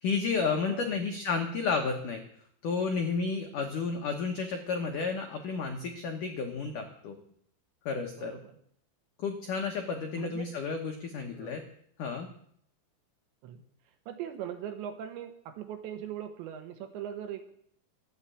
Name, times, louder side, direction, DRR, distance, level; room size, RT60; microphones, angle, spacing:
voice 1, 0.0-2.2 2.6-7.2 7.9-8.4 9.2-11.6 12.0-12.3, left 5 dB, 85° left, 4 dB, 1.8 m, -31 dB
voice 2, 8.2-8.6 10.2-10.5 11.3-11.6 13.4-13.6 14.1-17.4, right 10 dB, 70° right, 7 dB, 3.2 m, -40 dB
13.5 x 10.5 x 8.4 m, 0.67 s
omnidirectional pair, 5.7 m